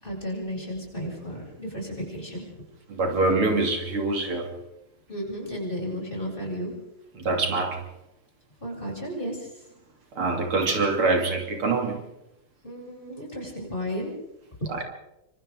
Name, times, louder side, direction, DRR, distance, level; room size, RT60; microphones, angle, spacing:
voice 1, 0.0-2.5 5.1-6.7 8.6-9.5 12.6-14.1 14.6-14.7, equal, 20° left, -3 dB, 8.0 m, -33 dB
voice 2, 2.9-4.5 7.1-7.8 10.2-12.0 14.7-14.8, right 3 dB, 75° right, 2 dB, 3.6 m, -24 dB
28.0 x 25.5 x 3.8 m, 0.90 s
omnidirectional pair, 2.4 m